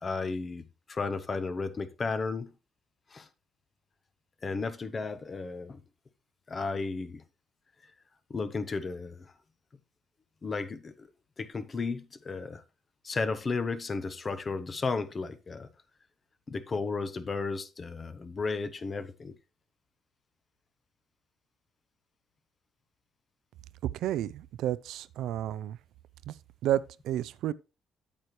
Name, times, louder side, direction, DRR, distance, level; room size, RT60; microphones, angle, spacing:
voice 1, 0.0-2.5 3.1-3.3 4.4-5.8 6.5-7.2 8.3-9.3 10.4-11.1 11.4-12.6 13.0-15.7 16.5-19.3, left 4 dB, 35° left, 0.9 m, -34 dB
voice 2, 24.0-25.8 26.6-27.5, right 12 dB, 80° right, 0.4 m, -31 dB
8.7 x 8.3 x 3.1 m
cardioid pair, 105°, 0 cm